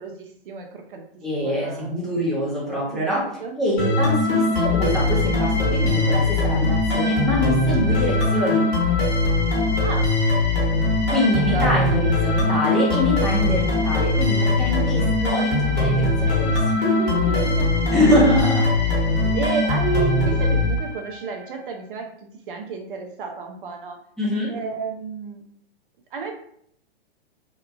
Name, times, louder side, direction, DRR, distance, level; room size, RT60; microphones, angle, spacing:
voice 1, 0.0-1.0 1.4-1.9 2.9-3.5 9.8-10.1 11.3-11.7 13.2-13.3 16.7-17.7 19.0-24.0 24.5-25.4 26.1-26.3, right 5 dB, 55° right, 3 dB, 0.5 m, -31 dB
voice 2, 1.2-3.2 3.6-8.7 11.1-16.6 17.9-18.7 24.2-24.5, left 1 dB, ahead, -7 dB, 0.5 m, -24 dB
sound 1, 3.8-21.3, left 2 dB, 35° left, 1.1 m, -21 dB
2.8 x 2.2 x 2.2 m, 0.67 s
hypercardioid pair, 120°, 31 cm